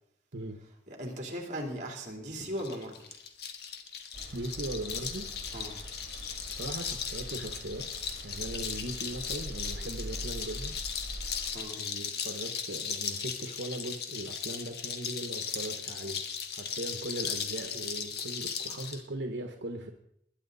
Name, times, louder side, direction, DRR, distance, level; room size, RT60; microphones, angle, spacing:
voice 1, 0.9-3.2 5.5-5.8 11.5-11.8, equal, 45° right, 1 dB, 3.5 m, -38 dB
sound 1, 2.6-19.0, left 7 dB, 60° left, 1.4 m, -37 dB
sound 2, 4.1-11.6, right 1 dB, 65° right, 2.1 m, -43 dB
voice 2, 4.3-5.3 6.5-10.7 11.8-16.2 16.5-19.9, right 1 dB, 80° right, 5 dB, 1.2 m, -39 dB
21.0 x 10.5 x 4.1 m, 0.75 s
head